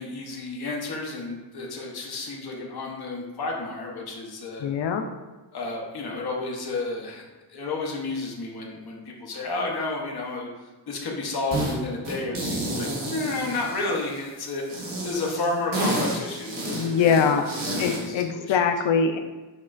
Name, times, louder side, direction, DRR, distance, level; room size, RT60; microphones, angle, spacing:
voice 1, 0.0-4.7 5.5-10.5 10.9-17.4 17.6-18.6, left 3 dB, 60° left, -1 dB, 0.9 m, -31 dB
voice 2, 4.6-5.0 16.6-17.4 17.8-19.2, left 6 dB, 80° left, 6 dB, 0.5 m, -23 dB
sound 1, 11.5-11.7 12.0-14.2 14.7-18.1, right 1 dB, 50° right, 1.2 m, -30 dB
6.5 x 3.0 x 2.5 m, 1.2 s
wide cardioid pair, 170°, 44 cm